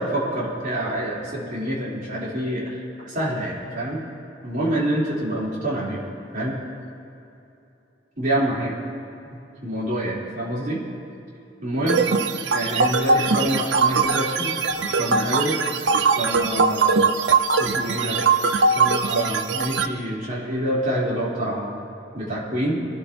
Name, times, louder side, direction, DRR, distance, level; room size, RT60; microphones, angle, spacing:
voice 1, 0.0-4.0 4.4-6.0 6.3-6.6 8.2-8.7 9.6-10.8 11.6-12.0 12.5-15.6 16.0-17.0 17.6-18.2 18.5-21.8 22.1-22.8, right 1 dB, 50° right, -6 dB, 4.0 m, -27 dB
sound 1, 11.9-19.9, right 4 dB, 80° right, 0.7 m, -21 dB
24.0 x 12.5 x 3.0 m, 2.9 s
head